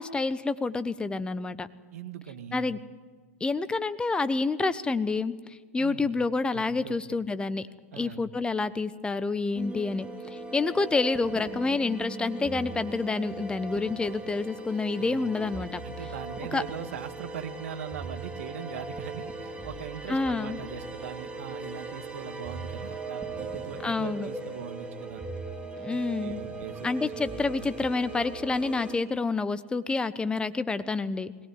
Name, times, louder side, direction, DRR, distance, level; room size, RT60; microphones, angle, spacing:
voice 1, 0.0-1.7 2.5-2.8 3.4-7.7 7.9-15.8 16.5-16.6 20.1-20.6 23.8-24.3 25.8-26.4 26.8-31.3, left 3 dB, 10° left, 13 dB, 1.0 m, -28 dB
voice 2, 1.9-2.7 5.8-6.1 6.5-7.0 7.9-8.2 15.0-15.2 15.8-25.2 25.9-27.1 27.6-27.7, right 8 dB, 70° right, 8 dB, 2.1 m, -41 dB
sound 1, 9.5-29.0, right 3 dB, 15° right, 3.8 m, -39 dB
21.5 x 18.0 x 9.6 m, 1.5 s
hypercardioid pair, 100°, 8 cm